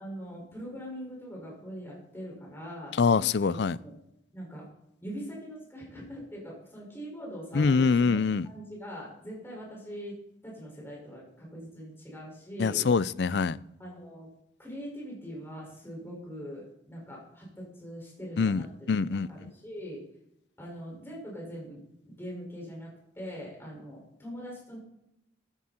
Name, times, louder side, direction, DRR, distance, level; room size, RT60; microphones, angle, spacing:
voice 1, 0.0-3.0 3.4-3.9 4.3-4.7 5.0-8.2 8.4-10.2 10.4-12.8 13.8-14.3 14.6-20.0 20.6-21.8 22.1-24.8, equal, 15° left, 5.7 m, -42 dB
voice 2, 3.0-3.8 7.5-8.5 12.6-13.6 18.4-19.3, left 5 dB, 65° left, 0.4 m, -24 dB
15.0 x 11.0 x 4.4 m
head